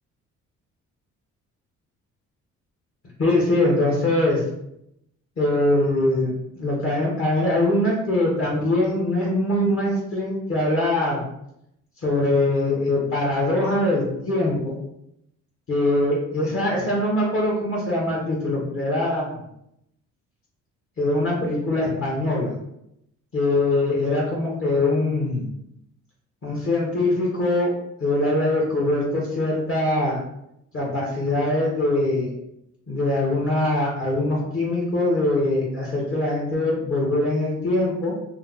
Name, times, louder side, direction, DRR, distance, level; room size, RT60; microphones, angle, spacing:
voice 1, 3.2-4.4 5.4-11.2 12.0-14.8 15.7-19.3 21.0-22.5 23.3-25.5 26.4-27.7 28.0-30.2 30.7-32.3 32.9-38.1, left 1 dB, 45° left, -3 dB, 1.1 m, -22 dB
3.1 x 2.0 x 3.7 m, 0.78 s
cardioid pair, 90°, 30 cm